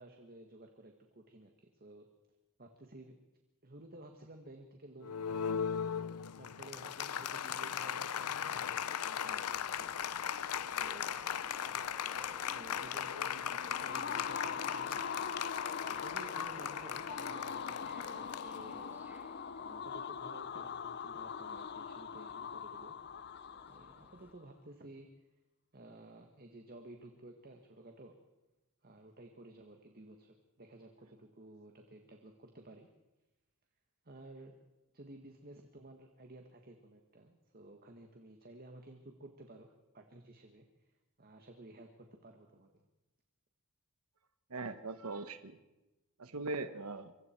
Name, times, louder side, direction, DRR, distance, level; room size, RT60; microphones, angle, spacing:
voice 1, 0.0-2.1 2.6-3.2 3.6-5.9 6.4-10.0 10.7-11.1 12.5-15.4 15.8-19.0 19.6-23.0 23.7-25.1 25.7-28.1 28.8-32.9 34.0-34.6 34.9-39.7 39.9-42.9, right 2 dB, 40° right, 4 dB, 1.7 m, -54 dB
Applause, 5.0-19.1, left 8 dB, 90° left, 0.6 m, -38 dB
sound 1, 9.3-24.3, right 1 dB, 10° right, 1.4 m, -59 dB
sound 2, 13.4-24.3, left 6 dB, 50° left, 0.6 m, -42 dB
voice 2, 44.5-45.6 46.2-47.1, right 3 dB, 75° right, 10 dB, 1.2 m, -40 dB
25.5 x 24.0 x 4.6 m, 1.0 s
head